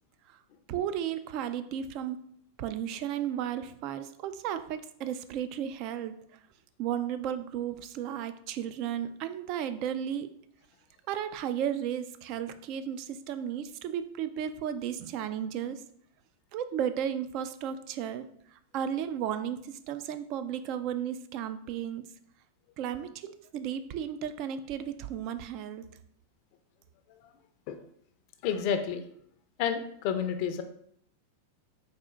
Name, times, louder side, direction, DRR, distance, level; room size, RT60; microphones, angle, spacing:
voice 1, 0.7-2.2 2.6-6.2 6.8-10.3 11.1-15.8 16.5-22.0 22.8-25.8, right 9 dB, 50° right, 11 dB, 0.4 m, -34 dB
voice 2, 28.4-29.0 29.6-30.6, left 8 dB, 55° left, 8 dB, 0.4 m, -30 dB
4.1 x 2.5 x 3.6 m, 0.67 s
hypercardioid pair, 110°, 0 cm